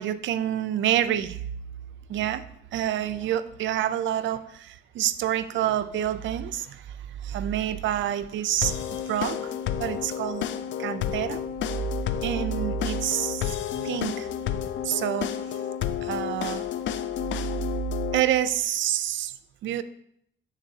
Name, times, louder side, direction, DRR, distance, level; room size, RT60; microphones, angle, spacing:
voice 1, 0.0-1.4 2.1-2.4 2.7-7.0 7.2-10.5 10.8-11.4 12.2-14.3 14.8-15.3 16.0-16.7 18.1-19.3 19.6-19.8, right 11 dB, 70° right, 13 dB, 0.4 m, -28 dB
sound 1, 8.6-18.2, left 9 dB, 70° left, 0.4 m, -31 dB
9.0 x 4.0 x 2.7 m, 0.72 s
cardioid pair, 90°, 20 cm